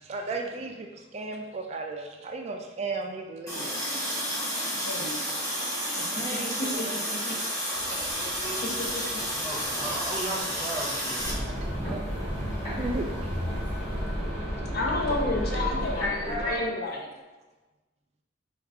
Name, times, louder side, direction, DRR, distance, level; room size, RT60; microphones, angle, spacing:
voice 1, 0.1-3.8 6.1-6.7 7.9-8.8 9.9-10.2 11.9-12.0 12.8-13.3 15.1-15.2 16.2-16.3, right 3 dB, 35° right, 3 dB, 0.3 m, -36 dB
Water tap faucet, 3.5-11.3, equal, 20° left, 1.0 m, -31 dB
voice 2, 4.8-5.2 6.0-6.1 6.6-7.4 8.4-8.5 8.9-9.2 14.7-17.2, left 2 dB, 55° left, -1 dB, 0.7 m, -31 dB
sound 1, 7.7-14.5, right 1 dB, 70° right, 0.7 m, -48 dB
voice 3, 9.2-11.3, right 1 dB, 15° right, -4 dB, 0.7 m, -36 dB
sound 2, 11.2-16.7, equal, 35° left, 1.4 m, -31 dB
4.6 x 2.3 x 3.5 m, 1.2 s
head